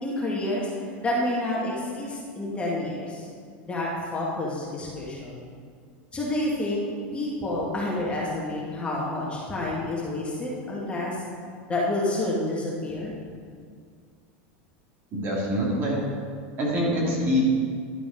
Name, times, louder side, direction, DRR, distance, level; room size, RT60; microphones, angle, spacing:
voice 1, 0.0-0.7 1.0-3.3 3.6-5.4 6.1-6.8 7.1-11.2 11.7-13.1, left 1 dB, 20° left, -5 dB, 1.9 m, -29 dB
voice 2, 15.1-16.0 16.6-17.4, equal, 40° right, -4 dB, 2.7 m, -25 dB
11.5 x 5.1 x 5.2 m, 2.1 s
supercardioid pair, 130°, 6 cm